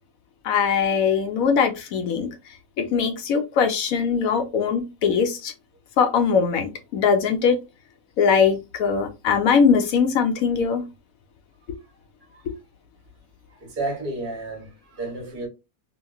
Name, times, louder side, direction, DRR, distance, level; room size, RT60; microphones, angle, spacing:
voice 1, 0.4-2.3 2.8-5.5 6.0-7.6 8.2-10.8 12.5-12.6, left 6 dB, 70° left, 1.0 m, -21 dB
voice 2, 13.5-15.5, right 2 dB, 40° right, 0.9 m, -32 dB
2.9 x 2.5 x 2.3 m
omnidirectional pair, 1.5 m